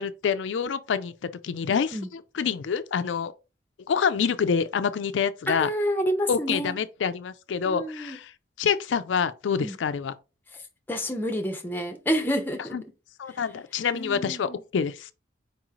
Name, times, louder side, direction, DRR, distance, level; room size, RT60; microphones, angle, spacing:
voice 1, 0.0-2.0 2.4-3.3 3.9-5.7 6.3-8.3 8.6-10.1 12.7-12.8 13.2-15.1, left 6 dB, 85° left, 0.4 m, -27 dB
voice 2, 5.5-6.8 7.7-8.2 9.6-9.8 10.9-12.8 13.3-13.4 13.9-14.6, equal, 10° left, 0.7 m, -29 dB
4.7 x 3.1 x 3.7 m
head